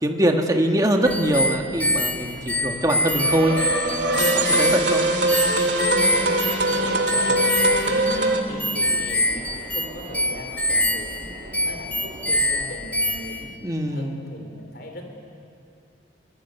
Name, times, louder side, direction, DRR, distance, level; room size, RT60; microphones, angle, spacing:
voice 1, 0.0-3.5 4.3-5.1 13.6-14.2, right 1 dB, 20° right, 3 dB, 1.6 m, -22 dB
sound 1, 1.1-13.5, left 1 dB, 5° left, 0.8 m, -25 dB
Subway metro underground, 1.4-12.7, right 1 dB, 40° right, 2.4 m, -43 dB
sound 2, 2.8-8.4, right 2 dB, 65° right, 2.4 m, -22 dB
voice 2, 6.7-8.2 8.5-13.6 13.9-15.1, left 1 dB, 55° left, 3 dB, 4.0 m, -39 dB
24.0 x 21.5 x 8.2 m, 2.5 s
head